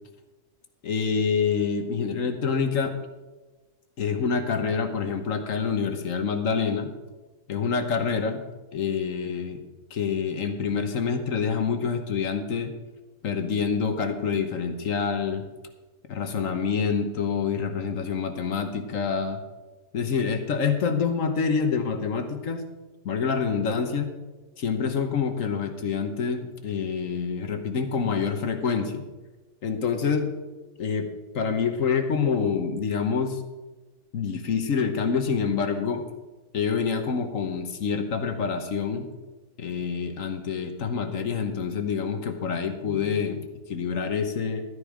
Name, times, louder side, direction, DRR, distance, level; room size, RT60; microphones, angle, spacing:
voice 1, 0.8-2.9 4.0-6.9 7.5-8.4 8.7-9.6 9.9-12.7 13.2-15.5 16.1-19.4 19.9-22.6 23.0-24.1 24.6-29.0 29.6-30.3 30.8-31.1 31.3-33.4 34.1-36.0 36.5-39.1 39.6-44.6, left 6 dB, 60° left, 7 dB, 1.4 m, -27 dB
12.5 x 9.9 x 5.0 m, 1.2 s
omnidirectional pair, 1.6 m